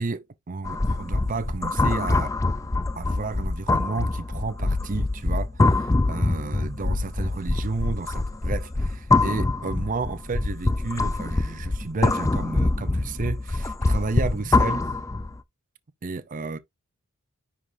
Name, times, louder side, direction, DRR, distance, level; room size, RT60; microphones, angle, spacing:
voice 1, 0.0-2.3 2.9-14.8 16.0-16.6, right 3 dB, 35° right, 0.5 m, -32 dB
sound 1, 0.6-15.4, left 2 dB, 15° left, 0.4 m, -24 dB
9.8 x 3.8 x 2.6 m
head